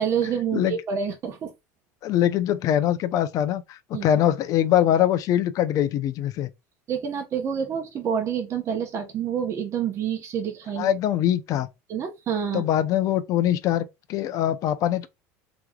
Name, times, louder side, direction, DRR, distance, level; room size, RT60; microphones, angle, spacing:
voice 1, 0.0-1.5 3.9-4.0 6.9-10.9 11.9-12.6, right 7 dB, 40° right, 0.9 m, -27 dB
voice 2, 2.0-6.5 10.8-11.7 12.5-15.1, left 11 dB, 50° left, 0.6 m, -23 dB
3.4 x 3.0 x 2.3 m
supercardioid pair, 110°, 8 cm